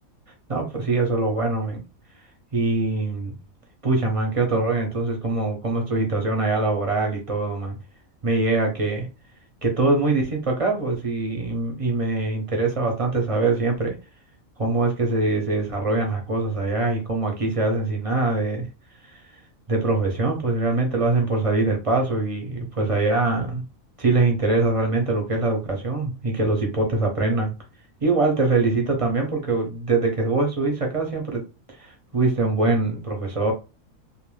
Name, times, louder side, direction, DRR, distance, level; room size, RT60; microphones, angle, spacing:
voice 1, 0.5-1.8 2.5-3.4 3.8-7.8 8.2-9.1 9.6-14.0 14.6-18.7 19.0-19.2 19.7-23.6 24.0-27.5 28.0-31.4 31.8-33.5, right 3 dB, 45° right, 0.4 m, -23 dB
2.5 x 2.2 x 3.1 m
omnidirectional pair, 1.5 m